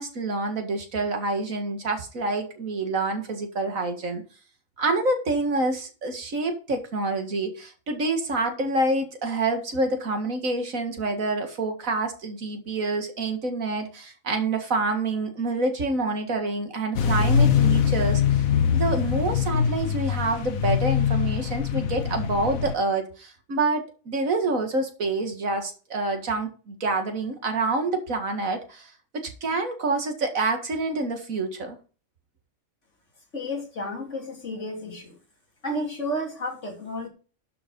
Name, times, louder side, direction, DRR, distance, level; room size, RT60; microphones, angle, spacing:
voice 1, 0.0-4.2 4.8-18.4 18.7-31.8, right 2 dB, 75° right, 2.3 m, -27 dB
sound 1, 17.0-22.8, left 7 dB, 80° left, 1.4 m, -23 dB
voice 2, 33.3-35.2 35.6-37.1, equal, 55° left, 3.4 m, -32 dB
12.0 x 5.4 x 5.3 m
omnidirectional pair, 1.4 m